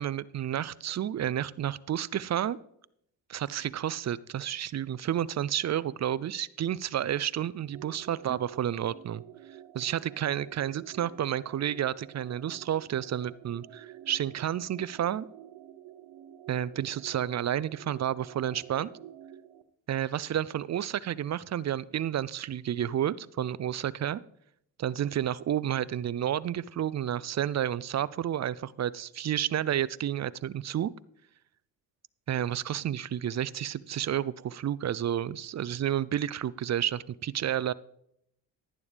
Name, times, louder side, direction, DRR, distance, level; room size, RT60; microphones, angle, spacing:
voice 1, 0.0-2.6 3.3-9.2 9.7-15.3 16.5-18.9 19.9-24.2 24.8-30.9 32.3-37.7, right 10 dB, 35° right, 20 dB, 0.4 m, -31 dB
sound 1, 7.7-19.6, right 12 dB, 70° right, 0.8 m, -50 dB
11.0 x 11.0 x 3.4 m, 0.73 s
supercardioid pair, 65°, 48 cm